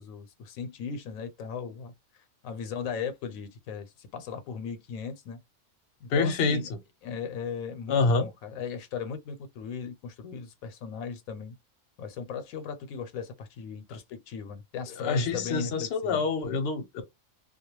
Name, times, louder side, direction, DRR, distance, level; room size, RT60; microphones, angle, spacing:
voice 1, 0.0-5.4 6.0-6.7 7.0-11.6 12.0-16.2, left 6 dB, 80° left, 1.0 m, -37 dB
voice 2, 6.1-6.6 7.9-8.3 15.0-17.0, left 4 dB, 55° left, 0.8 m, -26 dB
2.2 x 2.2 x 3.0 m
omnidirectional pair, 1.4 m